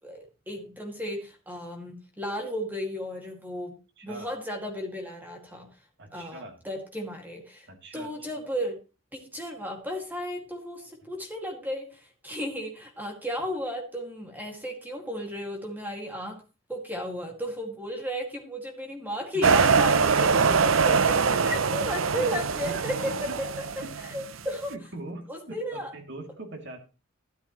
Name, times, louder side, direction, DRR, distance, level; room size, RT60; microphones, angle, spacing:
voice 1, 0.0-3.8 4.0-5.7 6.1-7.7 7.9-8.8 9.1-16.4 16.7-21.1 21.5-23.5 24.1-24.7 25.3-25.9, equal, 10° right, 2 dB, 2.2 m, -34 dB
voice 2, 4.0-4.3 6.0-6.6 7.7-8.1 19.3-19.6 20.3-21.1 21.3-21.6 22.1-23.4 23.8-23.9 24.7-26.8, right 2 dB, 65° right, 3 dB, 2.8 m, -42 dB
sound 1, 19.4-24.4, right 5 dB, 85° right, 0.7 m, -23 dB
13.0 x 12.5 x 3.1 m, 0.32 s
head